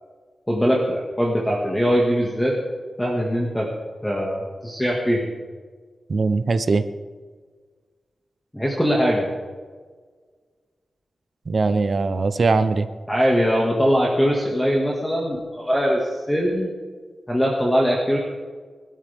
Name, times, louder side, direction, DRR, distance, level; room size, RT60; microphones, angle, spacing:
voice 1, 0.5-2.6 3.0-3.7 4.0-5.3 8.5-9.3 13.1-16.7 17.3-18.2, equal, 5° left, -3 dB, 2.0 m, -21 dB
voice 2, 6.1-6.8 11.5-12.9, right 4 dB, 45° right, 11 dB, 0.8 m, -20 dB
22.0 x 12.5 x 3.6 m, 1.5 s
wide cardioid pair, 130°, 0 cm